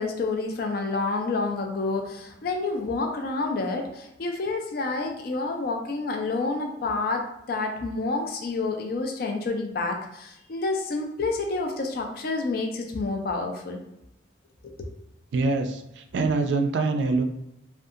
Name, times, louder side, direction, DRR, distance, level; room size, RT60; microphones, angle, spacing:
voice 1, 0.0-13.8 14.6-14.9, left 3 dB, 50° left, 3 dB, 0.4 m, -29 dB
voice 2, 15.3-17.2, right 3 dB, 70° right, 6 dB, 0.3 m, -24 dB
2.6 x 2.3 x 2.4 m, 0.83 s
head